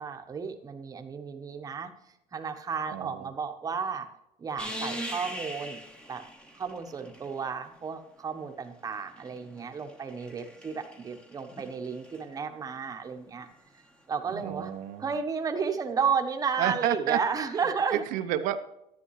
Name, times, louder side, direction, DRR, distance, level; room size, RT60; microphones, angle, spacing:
voice 1, 0.0-1.9 2.3-4.1 4.4-5.8 6.1-6.2 6.6-13.5 14.1-14.7 15.0-18.0, right 6 dB, 25° right, 6 dB, 1.1 m, -32 dB
voice 2, 2.9-3.3 14.3-15.1 16.6-17.2 17.9-18.6, right 12 dB, 80° right, 11 dB, 0.8 m, -30 dB
sound 1, 4.6-7.7 8.7-12.2 14.6-14.7, equal, 5° left, 1.2 m, -42 dB
11.5 x 10.5 x 3.2 m, 0.84 s
cardioid pair, 135°, 13 cm